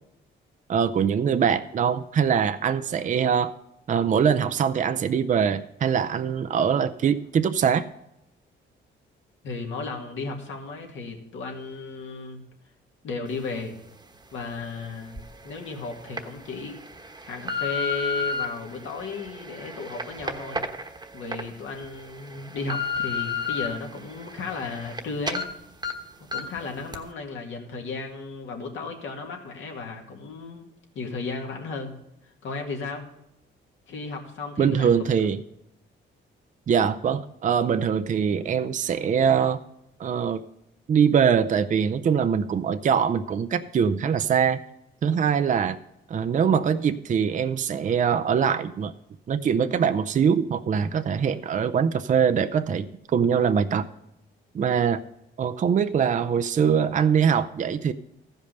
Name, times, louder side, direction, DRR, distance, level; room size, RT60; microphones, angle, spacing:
voice 1, 0.7-3.5 3.9-7.9 34.6-35.4 36.7-39.6 40.0-40.4 40.9-44.6 45.0-45.8 46.1-48.9 49.3-52.9 53.1-53.8 54.5-55.0 55.4-57.9, right 7 dB, 40° right, 10 dB, 0.5 m, -23 dB
voice 2, 9.4-12.4 13.0-13.7 14.3-16.8 17.2-20.6 21.1-25.4 26.3-30.7 31.0-31.9 32.2-33.1 33.9-35.3, left 4 dB, 75° left, 2 dB, 2.1 m, -34 dB
sound 1, 15.2-15.3 15.9-16.2 16.8-18.4 19.1-21.4 21.8-21.9 22.4-23.7 24.1-25.0 25.3-25.4 25.8-25.9 26.3-26.6 26.9-27.0, left 4 dB, 20° right, 1.1 m, -30 dB
14.5 x 5.4 x 6.7 m, 0.84 s
cardioid pair, 90°, 20 cm